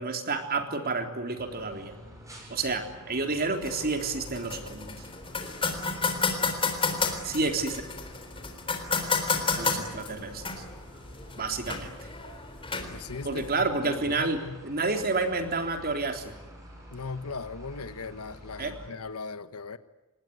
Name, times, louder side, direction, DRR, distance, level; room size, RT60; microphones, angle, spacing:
voice 1, 0.0-1.9 2.5-4.9 7.2-7.8 9.6-10.6 11.4-11.9 13.2-16.3 18.6-18.8, right 3 dB, 45° right, 5 dB, 3.6 m, -30 dB
sound 1, 1.4-18.9, equal, 15° right, 7.7 m, -50 dB
sound 2, 3.6-13.6, left 4 dB, 25° left, 3.8 m, -32 dB
voice 2, 12.9-14.6 16.9-19.8, left 4 dB, 80° left, 12 dB, 1.3 m, -38 dB
26.5 x 20.5 x 9.5 m, 1.1 s
head